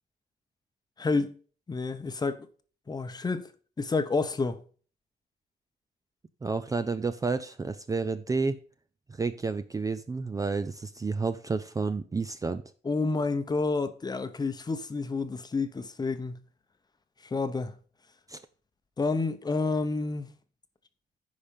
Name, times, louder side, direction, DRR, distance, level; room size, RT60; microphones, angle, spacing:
voice 1, 1.0-1.3 1.7-2.5 2.9-3.5 3.8-4.6 12.8-16.4 17.3-17.8 19.0-20.3, left 3 dB, 25° left, 0.8 m, -29 dB
voice 2, 6.4-8.6 9.1-12.6 18.3-18.4, right 4 dB, 20° right, 0.5 m, -30 dB
10.0 x 5.2 x 5.2 m
wide cardioid pair, 145°, 17 cm